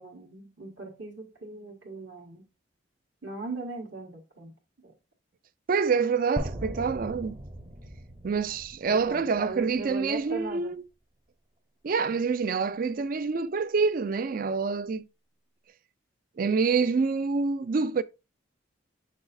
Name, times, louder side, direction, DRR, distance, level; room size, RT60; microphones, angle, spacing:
voice 1, 0.0-2.5 3.2-4.5 4.8-4.9 8.9-10.7, right 3 dB, 65° right, 1.6 m, -39 dB
voice 2, 5.7-7.4 8.2-10.8 11.8-15.0 16.4-18.0, right 5 dB, 45° right, 0.4 m, -26 dB
sound 1, 6.4-10.4, right 1 dB, 30° right, 0.8 m, -39 dB
6.9 x 5.9 x 2.6 m
head